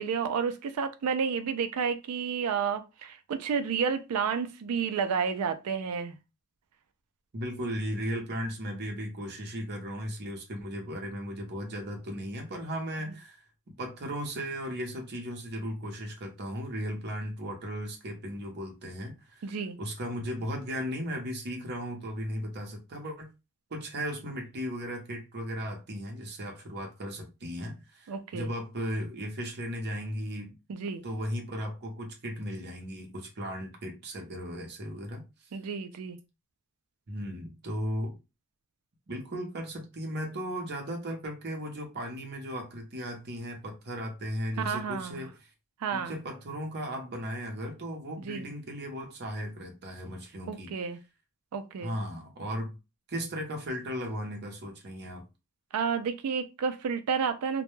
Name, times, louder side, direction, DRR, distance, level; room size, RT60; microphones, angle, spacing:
voice 1, 0.0-6.2 19.4-19.8 28.1-28.5 30.7-31.0 35.5-36.2 44.6-45.3 45.8-46.1 48.2-48.5 50.5-51.0 51.5-52.0 55.7-57.6, right 6 dB, 85° right, 0.4 m, -31 dB
voice 2, 7.3-13.4 13.8-23.3 23.7-30.5 31.0-35.2 37.1-38.2 39.1-45.3 45.9-50.7 51.8-52.7 53.1-55.2, equal, 50° right, 0.7 m, -36 dB
2.2 x 2.1 x 3.0 m
head